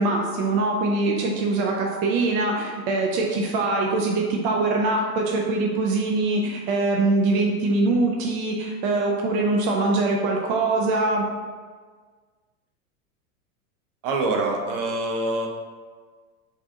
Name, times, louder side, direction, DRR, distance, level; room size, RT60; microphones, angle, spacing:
voice 1, 0.0-11.2, right 2 dB, 35° right, 0 dB, 0.4 m, -23 dB
voice 2, 14.0-15.5, right 2 dB, 60° right, 1 dB, 0.8 m, -25 dB
3.9 x 2.6 x 3.5 m, 1.5 s
supercardioid pair, 130°, 44 cm